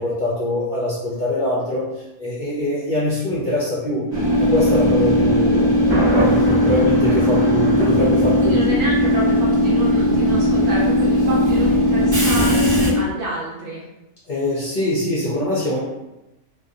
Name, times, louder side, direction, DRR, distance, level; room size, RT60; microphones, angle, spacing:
voice 1, 0.0-1.9 2.2-4.0 4.4-5.7 6.1-8.6 14.3-15.8, left 1 dB, 60° left, -7 dB, 0.5 m, -23 dB
Train / Subway metro underground, 4.1-12.9, left 1 dB, 40° right, 0.9 m, -17 dB
Thunder, 5.9-8.9, right 1 dB, 15° right, 0.5 m, -25 dB
voice 2, 8.4-13.8, right 1 dB, 70° right, -4 dB, 1.0 m, -28 dB
2.4 x 2.1 x 2.5 m, 0.96 s
omnidirectional pair, 1.3 m